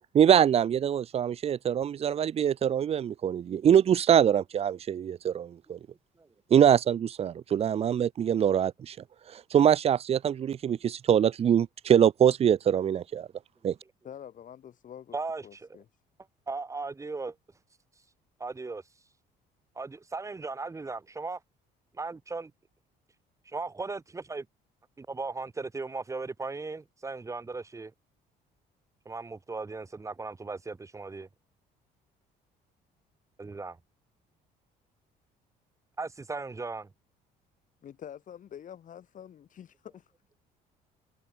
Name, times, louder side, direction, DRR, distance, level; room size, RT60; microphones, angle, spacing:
voice 1, 0.1-5.8 6.5-9.0 9.5-13.3 13.6-13.7, right 9 dB, 35° right, 0.5 m, -24 dB
voice 2, 14.0-15.2 15.4-15.9 37.8-40.0, left 9 dB, 50° left, 3.4 m, -46 dB
voice 3, 15.1-15.8 16.5-17.6 17.9-18.1 18.4-19.2 19.7-21.4 21.9-22.5 23.4-24.4 25.0-27.9 29.0-31.3 33.4-33.8 36.0-36.9, right 3 dB, 20° right, 1.5 m, -37 dB
cardioid pair, 110°, 17 cm